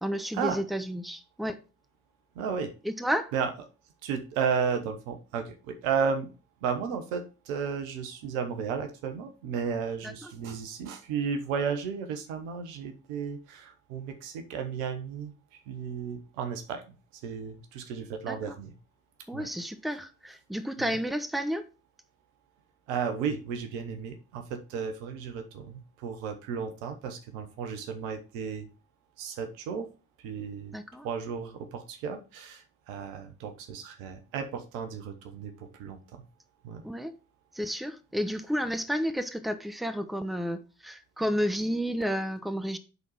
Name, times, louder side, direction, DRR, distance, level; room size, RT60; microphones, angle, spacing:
voice 1, 0.0-1.6 2.8-3.3 10.0-10.3 18.3-18.6 19.3-21.6 30.7-31.1 36.8-37.1 37.5-42.8, equal, ahead, 1.1 m, -31 dB
voice 2, 2.3-2.7 3.3-3.5 4.0-6.3 6.6-15.3 15.7-16.8 17.2-18.7 19.3-19.5 20.8-21.0 22.9-28.7 29.2-29.9 30.2-30.7 31.0-36.2 36.6-36.8, right 6 dB, 75° right, 1.2 m, -33 dB
9.8 x 4.1 x 4.7 m
figure-of-eight pair, 45°, 40 cm